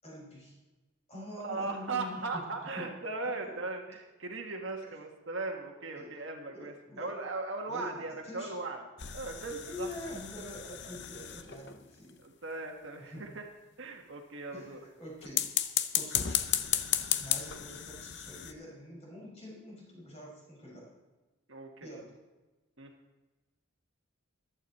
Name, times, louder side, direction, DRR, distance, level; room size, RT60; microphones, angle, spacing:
voice 1, 0.0-0.6 1.1-2.5 2.7-2.9 3.2-3.7 6.0-6.2 6.5-7.1 7.7-8.5 9.6-12.2 13.0-13.3 14.5-15.5 15.9-16.4 17.2-20.9 21.8-22.2, left 1 dB, 30° left, -3 dB, 5.7 m, -45 dB
voice 2, 1.4-8.8 9.1-9.9 12.2-13.4 13.8-14.8 21.5-21.9 22.8-22.9, right 3 dB, 60° right, 2 dB, 1.5 m, -38 dB
sound 1, 9.0-11.8 15.2-18.5, left 10 dB, 50° left, 0.7 m, -33 dB
15.0 x 11.5 x 4.3 m, 1.2 s
head